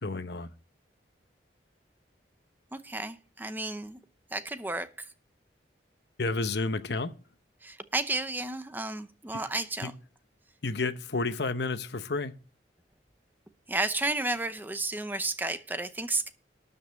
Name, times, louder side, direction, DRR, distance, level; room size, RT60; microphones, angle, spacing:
voice 1, 0.0-0.5 6.2-7.1 9.8-9.9 10.6-12.3, left 3 dB, 70° left, 0.9 m, -30 dB
voice 2, 2.7-4.0 4.3-5.1 7.6-9.9 13.7-16.3, right 2 dB, 10° right, 0.7 m, -32 dB
12.5 x 5.5 x 7.6 m
head